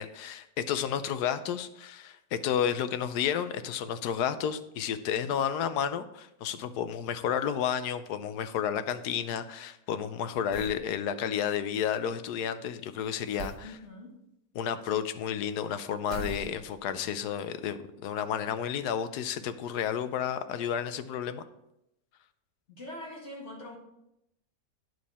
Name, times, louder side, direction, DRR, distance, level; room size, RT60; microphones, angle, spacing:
voice 1, 0.0-13.7 14.5-21.4, left 8 dB, 80° left, 11 dB, 1.2 m, -31 dB
sound 1, 10.5-10.9 13.4-13.7 16.1-16.9, right 3 dB, 90° right, 1.4 m, -40 dB
voice 2, 13.6-14.1 22.7-23.8, left 1 dB, 45° left, -1 dB, 2.2 m, -43 dB
9.4 x 7.2 x 4.2 m, 0.85 s
omnidirectional pair, 1.7 m